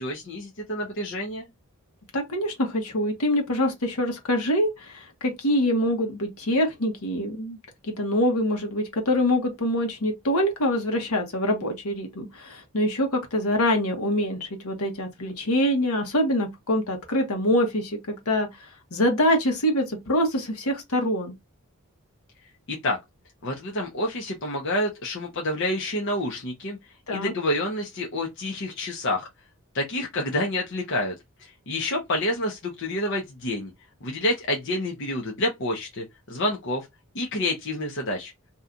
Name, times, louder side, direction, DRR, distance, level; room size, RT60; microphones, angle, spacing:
voice 1, 0.0-1.5 22.7-23.0 23.4-26.8 27.1-29.3 29.7-31.1 31.4-33.7 34.0-36.0 36.3-36.9 37.1-38.3, left 1 dB, 55° left, 0.7 m, -28 dB
voice 2, 2.1-7.6 8.0-18.0 18.3-21.4 27.1-27.3, left 1 dB, 80° left, 1.1 m, -25 dB
2.8 x 2.3 x 3.6 m
head